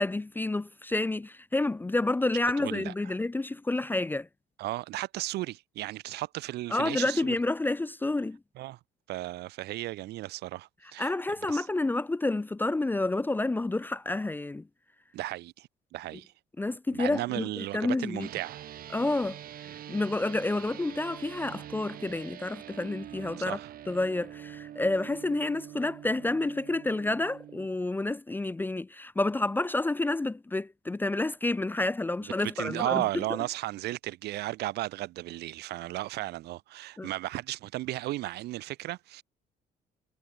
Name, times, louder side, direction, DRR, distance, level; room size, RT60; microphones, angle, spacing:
voice 1, 0.0-4.3 6.7-8.4 11.0-14.7 16.6-18.3 18.9-19.4 19.9-23.6 23.9-33.0 37.0-37.1, left 2 dB, 10° left, 0.5 m, -29 dB
voice 2, 2.6-3.1 4.6-7.3 8.6-8.8 9.1-11.1 11.5-11.7 15.1-16.3 16.9-18.7 23.5-23.7 32.4-39.2, right 16 dB, 80° right, 2.3 m, -35 dB
sound 1, 18.2-27.7, right 11 dB, 60° right, 3.8 m, -45 dB
cardioid pair, 110°, 17 cm